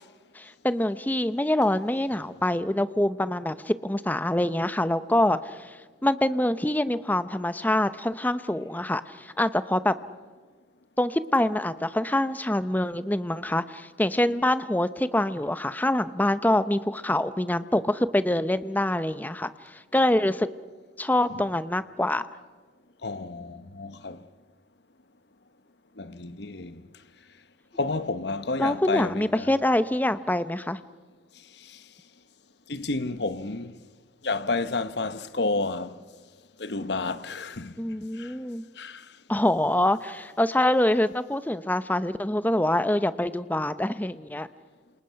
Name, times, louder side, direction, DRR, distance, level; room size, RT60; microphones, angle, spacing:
voice 1, 0.3-5.8 6.0-9.9 11.0-20.5 21.0-22.3 28.6-30.8 37.8-38.6 39.3-44.5, left 1 dB, 10° left, 0.7 m, -25 dB
voice 2, 23.0-24.2 26.0-26.8 27.8-29.6 31.6-31.8 32.7-33.8 34.2-36.0 36.6-37.7 38.2-38.3 38.8-39.0, left 3 dB, 60° left, 1.0 m, -30 dB
28.0 x 27.5 x 5.8 m
head